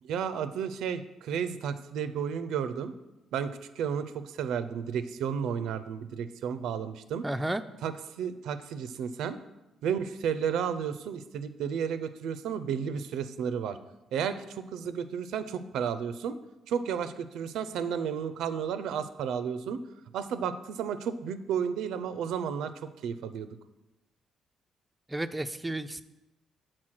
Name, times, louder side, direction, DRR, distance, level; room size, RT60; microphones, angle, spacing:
voice 1, 0.0-2.9 3.3-7.3 7.8-9.4 9.8-13.8 14.1-16.4 16.7-19.8 20.1-23.6, right 7 dB, 85° right, 12 dB, 0.4 m, -32 dB
voice 2, 7.2-7.6 25.1-26.0, right 1 dB, 10° right, 9 dB, 0.3 m, -32 dB
5.9 x 4.3 x 6.3 m, 0.97 s
cardioid pair, 90°, 0 cm